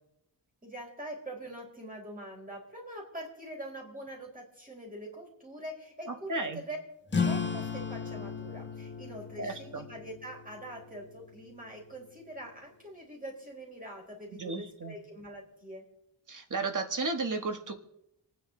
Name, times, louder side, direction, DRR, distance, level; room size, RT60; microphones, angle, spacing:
voice 1, 0.6-6.8 7.1-15.9, right 1 dB, 20° right, -1 dB, 4.3 m, -44 dB
voice 2, 6.1-6.6 9.4-9.9 14.4-15.0 16.3-17.7, right 3 dB, 45° right, 6 dB, 1.5 m, -34 dB
sound 1, 7.1-12.2, left 5 dB, 25° left, 1.5 m, -36 dB
27.5 x 9.8 x 3.8 m, 0.81 s
wide cardioid pair, 170°, 44 cm